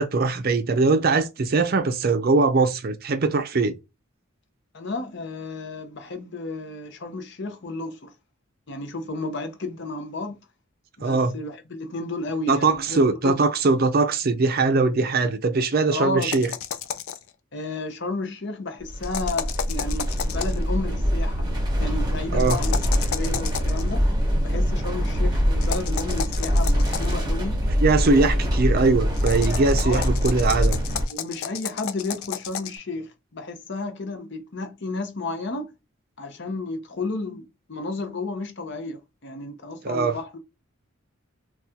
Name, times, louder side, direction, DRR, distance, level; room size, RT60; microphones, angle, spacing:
voice 1, 0.0-3.8 11.0-11.3 12.5-16.5 22.3-22.6 27.8-30.8 39.8-40.2, right 3 dB, 45° right, 0.5 m, -21 dB
voice 2, 4.7-8.1 8.7-10.4 11.0-13.4 15.9-16.4 17.5-21.5 21.8-24.1 24.4-27.7 28.0-28.3 29.8-30.1 31.1-35.7 36.2-40.4, left 2 dB, 55° left, 0.7 m, -32 dB
sound 1, 16.2-17.3 19.0-20.6 22.4-23.8 25.6-27.2 29.1-32.8, left 8 dB, 85° left, 0.4 m, -32 dB
sound 2, 18.8-31.0, equal, 20° right, 1.1 m, -24 dB
4.1 x 2.3 x 2.3 m
head